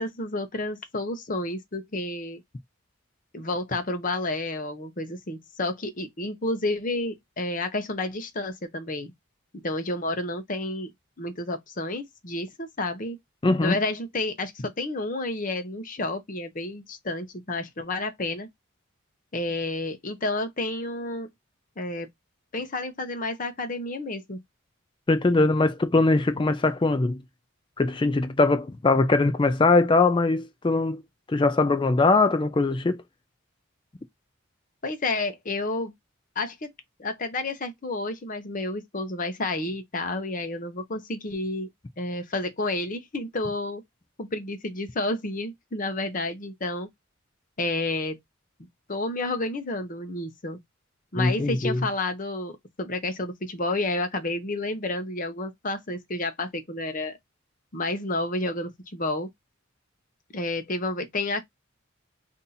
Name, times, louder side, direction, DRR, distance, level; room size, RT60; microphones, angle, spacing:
voice 1, 0.0-2.4 3.3-9.1 9.6-10.9 11.2-13.2 13.6-18.5 19.3-21.3 21.8-22.1 22.5-24.4 34.8-35.9 36.4-36.7 37.0-41.7 42.0-43.8 44.2-46.9 47.6-48.2 48.9-50.6 51.1-57.2 57.7-59.3 60.3-61.4, left 2 dB, 40° left, 0.8 m, -30 dB
voice 2, 13.4-13.8 25.1-27.2 27.8-31.0 31.3-33.0 51.2-51.8, left 3 dB, 25° left, 0.4 m, -21 dB
2.7 x 2.7 x 3.8 m
head